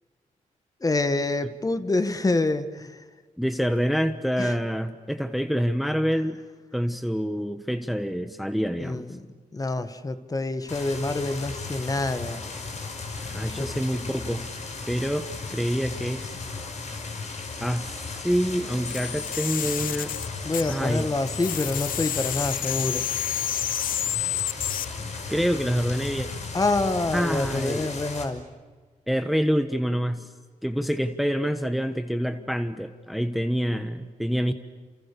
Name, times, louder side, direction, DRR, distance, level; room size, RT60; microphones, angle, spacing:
voice 1, 0.8-3.0 4.4-4.5 8.8-9.3 9.5-12.4 13.5-13.7 20.4-23.0 26.5-28.5, left 2 dB, 25° left, 10 dB, 1.7 m, -27 dB
voice 2, 3.4-6.4 6.7-9.1 13.3-14.5 14.8-16.3 17.6-20.1 20.7-21.1 25.3-26.3 27.1-27.9 29.1-30.3 30.6-34.5, equal, ahead, 9 dB, 1.3 m, -26 dB
sound 1, 10.7-28.2, left 4 dB, 55° left, 5.5 m, -36 dB
sound 2, 18.9-21.0 21.3-24.9, left 10 dB, 80° left, 0.7 m, -29 dB
29.5 x 29.0 x 7.0 m, 1.5 s
cardioid pair, 110°, 14 cm